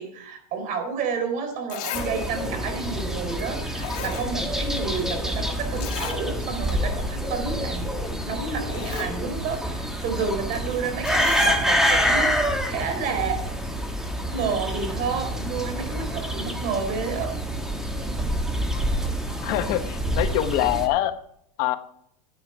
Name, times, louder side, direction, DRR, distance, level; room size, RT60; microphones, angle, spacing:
voice 1, 0.0-13.5 14.3-17.3, right 5 dB, 45° right, 6 dB, 4.1 m, -30 dB
Zipper (clothing), 1.2-1.3 1.7-2.1 2.4-2.5 3.4-3.5 3.8-4.7 5.0-5.1 5.8-6.2 6.6-6.7 7.1-7.3 8.2-8.3 8.6-9.1 11.0-11.6 12.4-12.5, left 8 dB, 70° left, 3.6 m, -35 dB
sound 1, 1.9-20.9, equal, ahead, 1.7 m, -27 dB
voice 2, 19.4-21.1 21.6-21.8, left 13 dB, 50° left, 10 dB, 1.0 m, -24 dB
12.0 x 8.7 x 4.7 m, 0.67 s
supercardioid pair, 120°, 19 cm